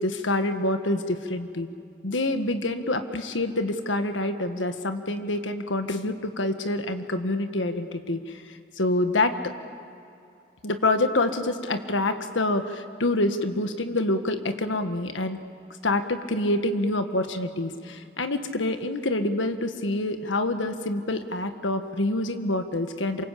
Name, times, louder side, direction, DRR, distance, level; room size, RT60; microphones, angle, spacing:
voice 1, 0.0-1.7 2.0-9.3 10.6-15.4 15.8-23.2, left 2 dB, 85° left, 8 dB, 1.6 m, -27 dB
27.5 x 24.5 x 8.5 m, 2.6 s
head